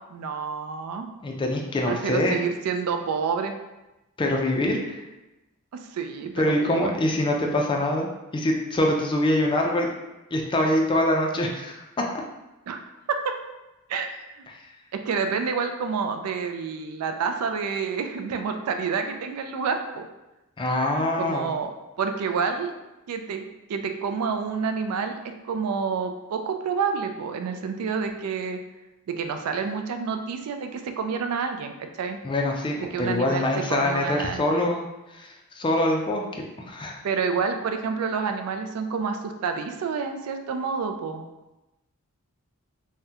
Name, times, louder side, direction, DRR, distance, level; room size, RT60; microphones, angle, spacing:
voice 1, 0.1-1.1 1.9-3.5 5.7-6.9 12.7-12.8 13.1-13.4 13.9-14.4 14.9-20.0 21.2-21.7 22.0-22.7 23.1-28.6 29.1-32.2 32.9-34.7 37.0-41.2, right 5 dB, 75° right, 6 dB, 0.3 m, -28 dB
voice 2, 1.2-2.4 4.2-5.0 6.4-8.1 8.3-9.9 10.3-11.8 20.6-21.5 32.2-34.8 35.1-37.0, left 1 dB, 20° left, 1 dB, 0.4 m, -24 dB
3.6 x 2.1 x 2.7 m, 1.0 s
head